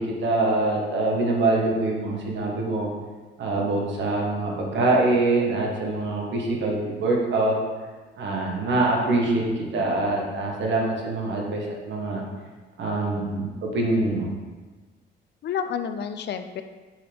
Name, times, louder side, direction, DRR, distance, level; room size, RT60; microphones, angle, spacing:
voice 1, 0.0-2.9 3.4-7.5 8.2-12.2 12.8-14.3, right 2 dB, 65° right, -1 dB, 1.5 m, -24 dB
voice 2, 12.8-13.3 15.4-16.6, left 7 dB, 60° left, 9 dB, 0.5 m, -31 dB
7.6 x 3.7 x 3.5 m, 1.3 s
cardioid pair, 90°, 20 cm